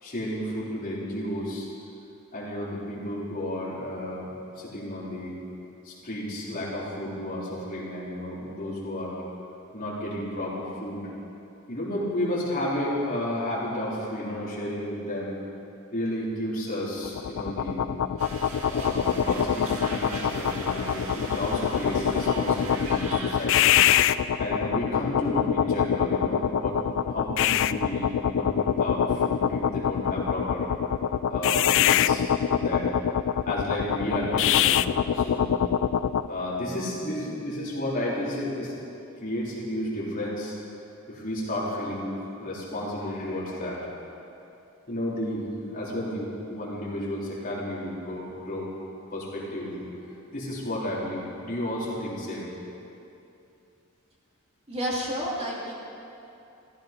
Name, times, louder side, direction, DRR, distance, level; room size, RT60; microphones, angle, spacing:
voice 1, 0.0-1.7 2.3-5.4 5.8-9.2 9.7-11.1 11.7-15.4 15.9-17.9 18.7-23.8 24.4-26.8 27.1-30.7 31.3-32.9 33.4-34.8 35.1-35.6 36.3-38.7 39.2-40.6 41.1-43.9 44.9-48.7 49.1-49.9 50.3-52.5, left 1 dB, 40° left, -6 dB, 3.7 m, -32 dB
sound 1, 17.0-36.3, left 9 dB, 60° left, 0.3 m, -24 dB
sound 2, 18.2-23.5, right 2 dB, 70° right, 2.1 m, -38 dB
voice 2, 54.7-55.7, equal, 30° right, -4 dB, 2.3 m, -30 dB
14.5 x 14.5 x 5.3 m, 2.7 s
head